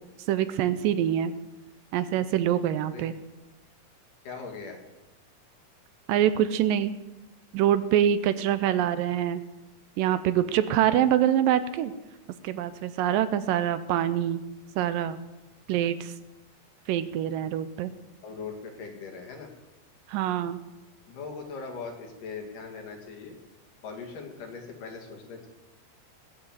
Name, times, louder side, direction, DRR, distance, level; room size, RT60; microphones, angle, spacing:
voice 1, 0.3-1.3 1.9-3.1 6.1-6.9 7.5-9.4 10.0-11.9 12.4-14.4 14.8-15.2 15.7-16.1 16.9-17.9 20.1-20.6, right 10 dB, 80° right, 13 dB, 2.3 m, -25 dB
voice 2, 4.2-4.8 18.2-19.5 21.1-23.4 23.8-25.5, left 5 dB, 65° left, 2 dB, 3.8 m, -40 dB
20.0 x 7.3 x 7.9 m, 1.0 s
omnidirectional pair, 4.1 m